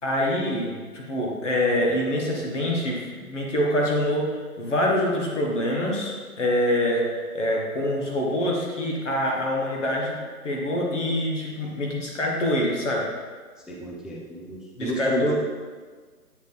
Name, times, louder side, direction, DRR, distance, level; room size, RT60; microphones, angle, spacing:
voice 1, 0.0-7.1 7.3-10.2 10.4-13.1 14.8-15.3, left 1 dB, 50° left, -2 dB, 1.3 m, -25 dB
voice 2, 13.7-15.3, right 1 dB, ahead, -2 dB, 0.3 m, -32 dB
7.9 x 4.4 x 3.3 m, 1.5 s
hypercardioid pair, 170°, 47 cm